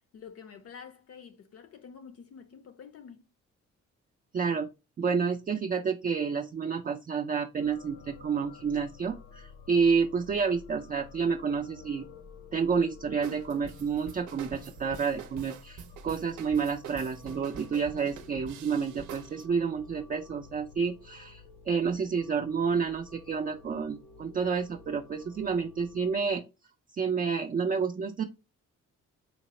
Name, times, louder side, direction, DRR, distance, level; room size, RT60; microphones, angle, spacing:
voice 1, 0.1-3.3, left 6 dB, 50° left, 0.5 m, -48 dB
voice 2, 4.3-4.7 5.0-12.1 12.5-26.4 26.9-28.2, right 5 dB, 30° right, 0.4 m, -29 dB
sound 1, 7.6-26.4, left 5 dB, 85° left, 0.8 m, -52 dB
sound 2, 13.2-19.4, right 7 dB, 80° right, 0.7 m, -46 dB
4.0 x 2.0 x 4.1 m
cardioid pair, 90°, 30 cm